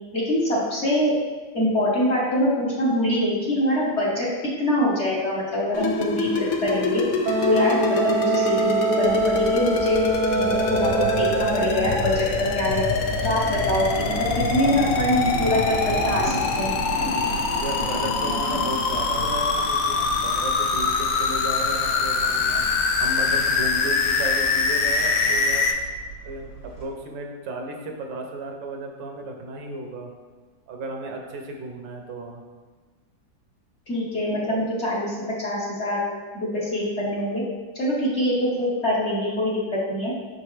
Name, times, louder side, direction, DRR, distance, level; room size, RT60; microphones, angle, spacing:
voice 1, 0.1-1.1 1.5-4.3 4.6-7.0 7.4-10.0 10.4-12.8 13.2-14.1 14.5-16.8 33.9-36.1 36.3-37.4 37.7-39.6 39.9-40.1, left 1 dB, 40° left, -7 dB, 1.2 m, -24 dB
sound 1, 5.7-25.7, left 4 dB, 80° left, 0.7 m, -24 dB
Wind instrument woodwind instrument, 7.3-11.9, right 3 dB, 50° right, 1.0 m, -24 dB
sound 2, 9.0-26.8, right 1 dB, 60° left, 2.8 m, -33 dB
voice 2, 17.6-22.6 23.0-25.7 26.2-30.1 30.7-32.4, right 2 dB, 75° right, 2 dB, 1.4 m, -34 dB
6.3 x 5.4 x 3.2 m, 1.4 s
omnidirectional pair, 2.1 m